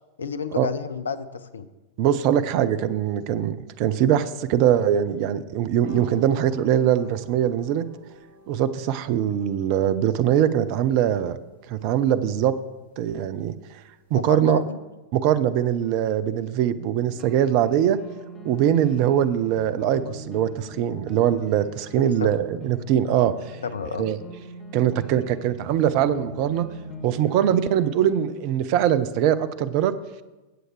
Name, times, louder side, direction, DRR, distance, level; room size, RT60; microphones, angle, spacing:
voice 1, 0.2-1.7 14.1-14.8 22.0-22.3 23.6-24.1, left 5 dB, 70° left, 12 dB, 0.6 m, -30 dB
voice 2, 2.0-7.9 8.5-11.4 11.7-12.5 13.0-13.5 14.1-14.6 15.1-18.0 18.4-23.6 24.0-24.2 24.7-26.7 27.0-29.9, right 10 dB, 45° right, 14 dB, 0.6 m, -22 dB
sound 1, 5.8-14.3, right 1 dB, 60° right, 2.5 m, -47 dB
sound 2, 17.0-28.3, equal, 25° left, 1.7 m, -42 dB
15.5 x 7.8 x 3.2 m, 1.1 s
figure-of-eight pair, 90°, 0 cm